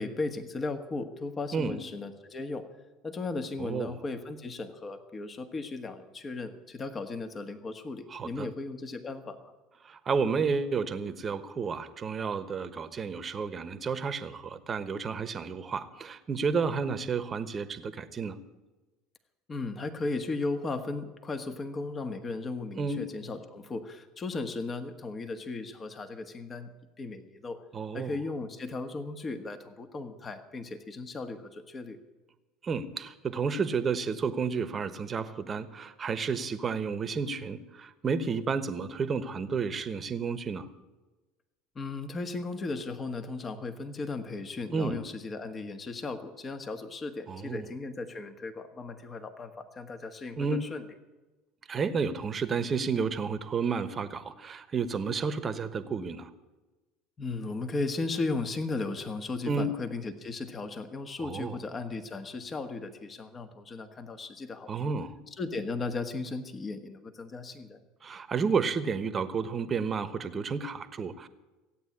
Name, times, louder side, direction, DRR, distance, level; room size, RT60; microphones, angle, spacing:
voice 1, 0.0-2.7 3.0-9.5 19.5-27.6 27.9-32.0 41.7-50.8 57.2-64.9 65.4-67.8, left 3 dB, 30° left, 8 dB, 1.5 m, -36 dB
voice 2, 3.6-4.0 8.1-8.5 9.8-18.4 22.8-23.0 27.7-28.1 32.6-40.7 44.7-45.0 47.3-47.7 50.4-50.7 51.7-56.3 59.5-59.7 61.2-61.6 64.7-65.1 68.0-71.3, right 5 dB, 30° right, 13 dB, 1.2 m, -31 dB
16.5 x 9.2 x 8.6 m, 1.2 s
hypercardioid pair, 75°, 0 cm